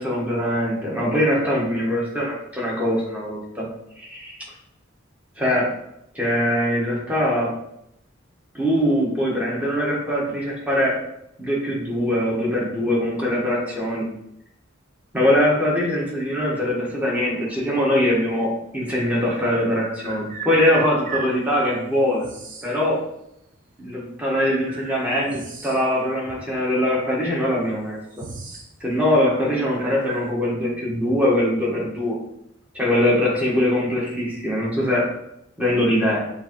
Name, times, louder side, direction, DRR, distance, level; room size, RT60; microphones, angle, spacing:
voice 1, 0.0-3.6 4.0-4.4 5.4-5.7 6.1-7.5 8.5-11.0 11.4-14.1 15.1-22.3 22.6-23.0 23.8-28.0 28.8-32.2 32.7-35.1 35.6-36.3, left 1 dB, 5° right, -4 dB, 1.1 m, -22 dB
sound 1, 18.0-18.1 19.2-21.3 22.2-22.7 23.8-23.9 24.6-26.0 26.3-26.4 27.2-27.3 27.6-28.7 29.0-29.2 29.8-30.3, right 5 dB, 40° right, 0.6 m, -36 dB
6.6 x 2.7 x 2.9 m, 0.78 s
head